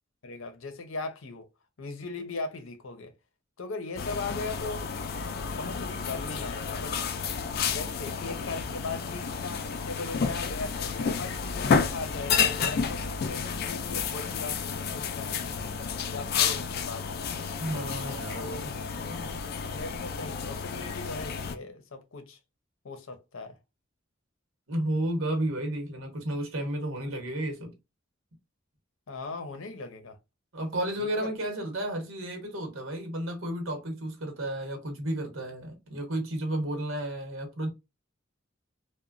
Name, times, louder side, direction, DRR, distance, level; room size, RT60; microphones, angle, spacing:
voice 1, 0.2-1.5 1.8-3.1 3.6-7.0 7.7-15.6 16.1-17.1 18.3-18.7 19.7-22.4 22.8-23.6 29.1-30.2 31.2-31.3, left 3 dB, 90° left, 0.6 m, -39 dB
sound 1, 4.0-21.6, left 6 dB, 50° left, 0.3 m, -31 dB
voice 2, 17.6-18.6 19.0-19.3 24.7-27.7 30.5-37.7, right 1 dB, 85° right, 1.0 m, -32 dB
2.9 x 2.1 x 2.4 m
head